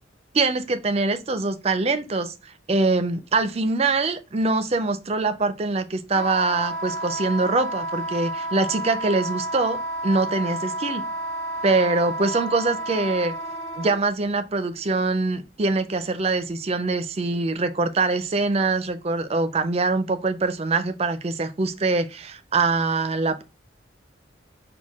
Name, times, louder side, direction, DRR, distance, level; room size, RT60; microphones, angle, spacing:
voice 1, 0.3-11.1 11.6-13.3 13.8-23.4, right 3 dB, 30° right, 0.4 m, -24 dB
Wind instrument woodwind instrument, 6.1-14.0, right 1 dB, 85° left, 1.8 m, -31 dB
6.3 x 2.2 x 3.5 m
head